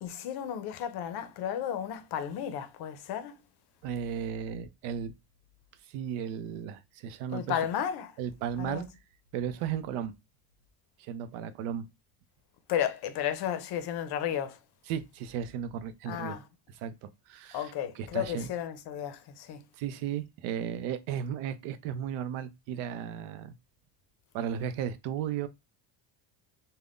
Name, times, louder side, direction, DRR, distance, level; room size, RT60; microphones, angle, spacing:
voice 1, 0.0-3.4 7.3-8.1 8.6-8.8 12.7-14.6 16.1-16.4 17.5-19.6, left 9 dB, 55° left, 0.6 m, -33 dB
voice 2, 3.8-5.1 5.8-7.6 8.2-8.9 9.3-10.1 11.0-11.9 14.9-16.4 16.7-18.5 19.7-23.5 24.3-25.5, right 9 dB, 85° right, 0.6 m, -35 dB
2.4 x 2.2 x 3.5 m
cardioid pair, 135°, 48 cm